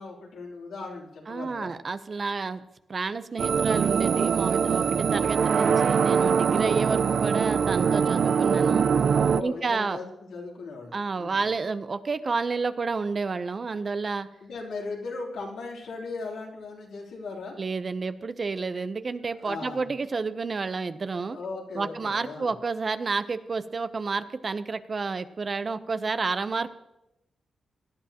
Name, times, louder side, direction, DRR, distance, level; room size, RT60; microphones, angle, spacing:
voice 1, 0.0-1.7 9.3-11.5 14.4-17.6 19.4-19.9 21.2-22.5, left 3 dB, 90° left, -4 dB, 3.2 m, -38 dB
voice 2, 1.3-2.6 2.9-8.9 9.4-10.0 10.9-14.3 17.6-21.4 21.7-26.7, right 4 dB, 50° right, 12 dB, 0.7 m, -30 dB
sound 1, 3.4-9.4, right 6 dB, 70° right, 0.3 m, -23 dB
18.0 x 11.0 x 2.9 m, 0.89 s
cardioid pair, 55°, 0 cm